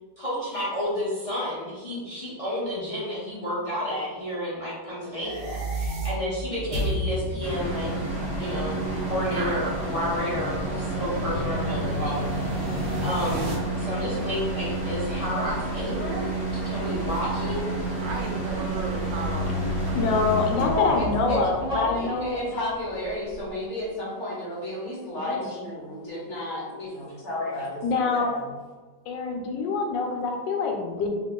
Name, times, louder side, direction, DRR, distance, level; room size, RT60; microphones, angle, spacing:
voice 1, 0.2-7.9 8.4-12.6 13.0-16.3 16.6-17.6, equal, 35° left, -10 dB, 0.5 m, -31 dB
sound 1, 5.0-13.5, equal, 55° right, 0.8 m, -33 dB
sound 2, 7.4-23.6, right 2 dB, 25° right, 1.4 m, -30 dB
voice 2, 9.3-9.6 18.0-20.8 28.1-28.2, right 3 dB, 80° right, 1 dB, 1.3 m, -36 dB
voice 3, 19.9-22.4 25.1-25.6 27.8-28.3 29.1-31.1, left 4 dB, 80° left, 2 dB, 1.3 m, -26 dB
voice 4, 20.5-28.5, left 1 dB, 55° left, -6 dB, 0.9 m, -32 dB
2.9 x 2.6 x 3.6 m, 1.4 s
omnidirectional pair, 2.0 m